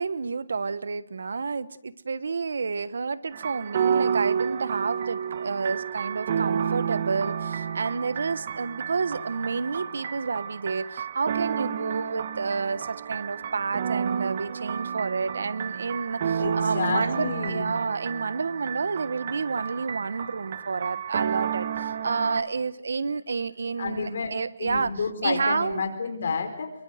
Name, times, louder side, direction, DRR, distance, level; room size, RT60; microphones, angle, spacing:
voice 1, 0.0-24.9 25.2-25.8, right 4 dB, 85° right, 17 dB, 1.2 m, -30 dB
sound 1, 3.3-22.4, right 7 dB, 40° right, 1.3 m, -30 dB
voice 2, 16.4-17.7 23.8-24.3 24.6-26.7, left 5 dB, 55° left, 6 dB, 4.7 m, -30 dB
26.5 x 23.5 x 8.0 m, 0.79 s
hypercardioid pair, 175°, 0 cm